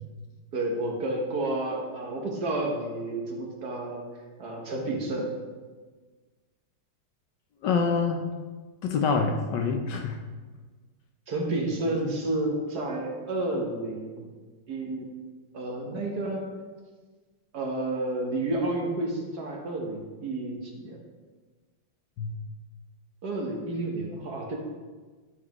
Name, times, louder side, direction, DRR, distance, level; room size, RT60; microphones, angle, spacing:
voice 1, 0.5-4.0 4.4-5.3 11.3-14.3 14.7-15.1 15.5-16.5 17.5-21.0 23.2-24.6, right 2 dB, 55° right, 0 dB, 1.6 m, -30 dB
voice 2, 7.6-8.2 8.8-10.2 22.2-22.3, left 5 dB, 70° left, 4 dB, 1.2 m, -26 dB
12.0 x 6.2 x 3.0 m, 1.4 s
omnidirectional pair, 2.2 m